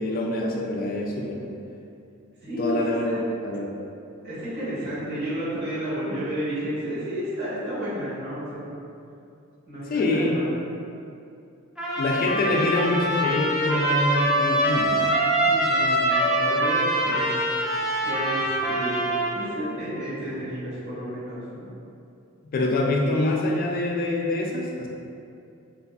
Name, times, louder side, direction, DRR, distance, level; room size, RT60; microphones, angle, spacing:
voice 1, 0.0-1.5 2.6-3.1 3.4-3.7 9.9-10.4 12.0-15.1 22.5-24.9, left 2 dB, 45° left, 0 dB, 0.3 m, -25 dB
voice 2, 2.4-2.8 3.0-3.1 4.2-8.8 9.7-10.5 15.4-17.3 18.0-19.0 19.3-21.7, equal, 50° right, -12 dB, 1.2 m, -31 dB
Trumpet, 11.8-19.4, right 1 dB, 5° right, 0.6 m, -24 dB
2.6 x 2.5 x 2.2 m, 2.5 s
head